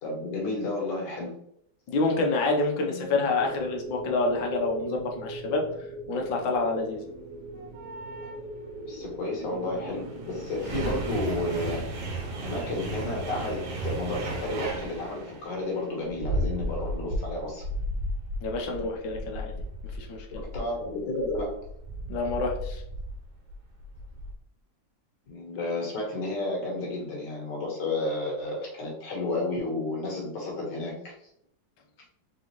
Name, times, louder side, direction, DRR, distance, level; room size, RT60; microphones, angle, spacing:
voice 1, 0.0-1.3 2.9-3.2 8.8-11.9 12.4-17.7 20.3-21.7 25.3-31.1, left 2 dB, 70° left, -2 dB, 2.0 m, -32 dB
voice 2, 1.9-5.7 6.1-7.1 18.4-19.5 20.0-20.3 22.1-22.8, left 3 dB, 85° left, 1 dB, 1.6 m, -27 dB
sound 1, 3.3-11.7, right 1 dB, 40° right, 1.6 m, -40 dB
sound 2, 7.5-8.4 9.3-24.3, right 1 dB, 65° right, 1.4 m, -35 dB
4.0 x 3.8 x 3.0 m, 0.73 s
omnidirectional pair, 2.0 m